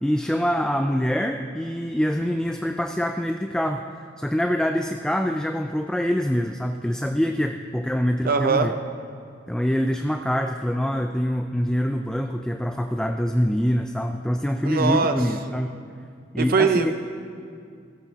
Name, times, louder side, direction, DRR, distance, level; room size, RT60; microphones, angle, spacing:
voice 1, 0.0-3.8 4.2-8.7 9.5-15.7 16.3-16.9, equal, 5° left, 5 dB, 0.3 m, -25 dB
voice 2, 8.2-8.7 14.6-15.2 16.4-16.9, right 4 dB, 50° right, 8 dB, 0.8 m, -21 dB
16.5 x 15.0 x 2.9 m, 2.2 s
head